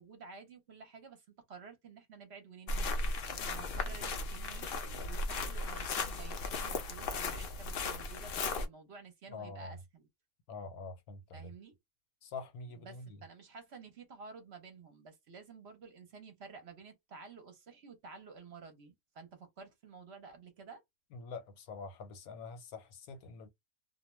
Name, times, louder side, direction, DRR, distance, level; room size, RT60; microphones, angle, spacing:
voice 1, 0.0-10.1 11.3-11.7 12.8-20.8, right 4 dB, 55° right, 0.8 m, -52 dB
sound 1, 2.7-8.7, left 3 dB, 60° left, 0.6 m, -36 dB
voice 2, 9.3-9.8 10.5-11.5 12.2-13.2 21.1-23.5, left 4 dB, 85° left, 1.2 m, -45 dB
2.5 x 2.2 x 3.0 m
omnidirectional pair, 1.5 m